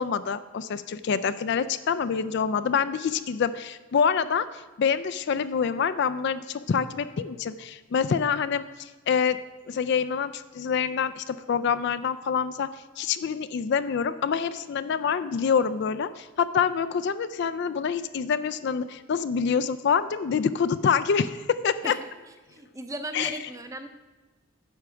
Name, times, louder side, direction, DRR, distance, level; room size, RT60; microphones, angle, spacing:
voice 1, 0.0-4.5 4.8-9.4 9.7-12.7 13.0-21.9 23.1-23.3, left 6 dB, 55° left, 13 dB, 0.3 m, -26 dB
voice 2, 22.5-23.9, right 1 dB, 15° right, 8 dB, 0.6 m, -36 dB
9.6 x 6.1 x 5.7 m, 1.3 s
head